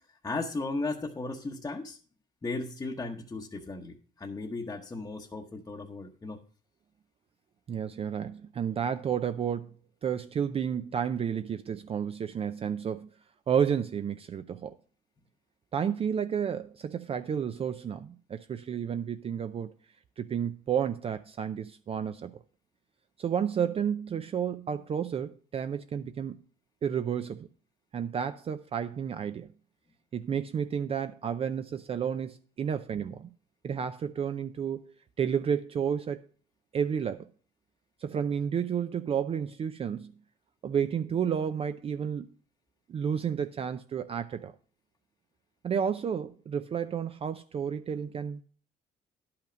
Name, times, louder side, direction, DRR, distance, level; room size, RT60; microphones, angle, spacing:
voice 1, 0.2-2.0 2.4-6.4, left 3 dB, 20° left, 0.9 m, -36 dB
voice 2, 7.7-9.7 10.0-13.1 13.5-14.7 15.7-19.7 20.2-22.3 23.2-26.3 26.8-27.5 27.9-29.5 30.1-33.3 33.6-36.3 36.7-37.3 38.0-40.1 40.6-42.3 42.9-44.5 45.6-48.4, right 8 dB, 35° right, 0.5 m, -31 dB
10.5 x 5.8 x 5.0 m
cardioid pair, 110°, 17 cm